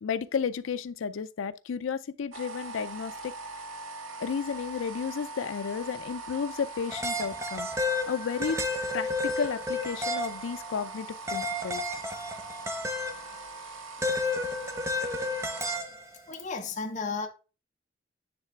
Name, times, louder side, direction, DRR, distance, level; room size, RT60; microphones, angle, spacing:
voice 1, 0.0-3.3 4.2-7.7 8.1-8.6 8.9-11.9, left 6 dB, 75° left, 0.4 m, -33 dB
sound 1, 2.3-15.8, right 3 dB, 80° right, 0.7 m, -42 dB
sound 2, 6.9-10.8 11.3-13.4 14.0-16.2, left 2 dB, 15° right, 0.6 m, -32 dB
voice 2, 16.3-17.3, left 4 dB, 35° left, 1.0 m, -33 dB
9.5 x 3.3 x 3.5 m
head